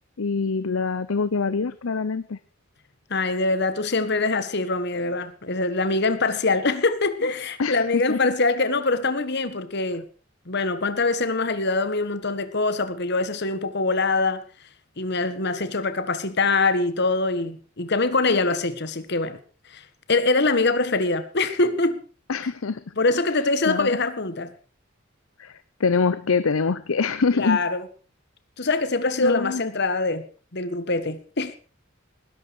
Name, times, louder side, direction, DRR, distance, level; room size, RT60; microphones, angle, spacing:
voice 1, 0.2-2.4 7.6-8.3 22.3-22.9 23.3-24.0 25.4-27.6 29.2-29.6, left 4 dB, 85° left, 0.7 m, -25 dB
voice 2, 3.1-10.0 10.5-14.4 15.0-19.4 19.7-19.8 20.1-22.0 23.0-24.5 27.3-27.8 28.6-30.2 30.5-31.6, left 3 dB, 55° left, 1.5 m, -23 dB
19.5 x 11.5 x 4.8 m
head